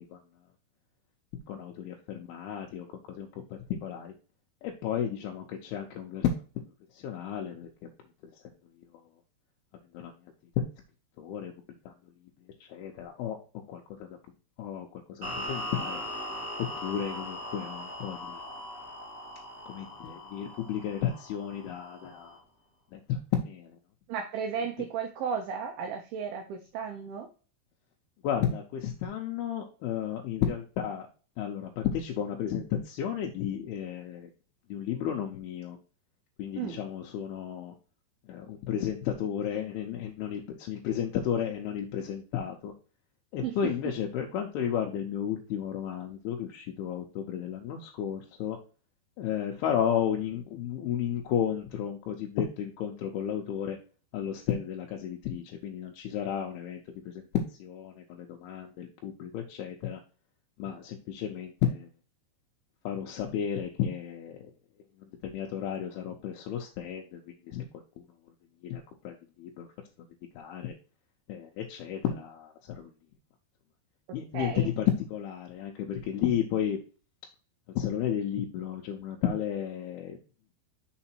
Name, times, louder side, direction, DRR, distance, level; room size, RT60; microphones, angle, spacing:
voice 1, 1.5-4.1 4.6-6.3 7.0-7.7 9.9-10.1 10.6-10.7 11.2-11.5 11.9-12.0 12.7-13.4 13.7-14.1 14.6-16.0 16.6-18.3 19.7-22.4 22.9-23.8 28.2-31.1 31.4-34.3 34.7-35.8 36.4-37.7 38.3-42.7 43.3-48.6 49.2-53.8 54.1-57.3 57.6-60.0 60.6-61.9 62.9-64.5 65.2-67.2 67.5-67.6 68.0-68.1 68.6-69.7 70.4-70.7 71.3-72.9 74.1-76.8 77.8-80.2, left 9 dB, 80° left, 1 dB, 2.3 m, -33 dB
sound 1, 15.2-22.4, left 1 dB, 40° right, 1.4 m, -40 dB
voice 2, 24.1-27.3 36.6-36.8 43.4-43.6 74.3-74.7, right 7 dB, 80° right, 4 dB, 2.2 m, -34 dB
6.5 x 3.9 x 4.3 m, 0.37 s
omnidirectional pair, 5.2 m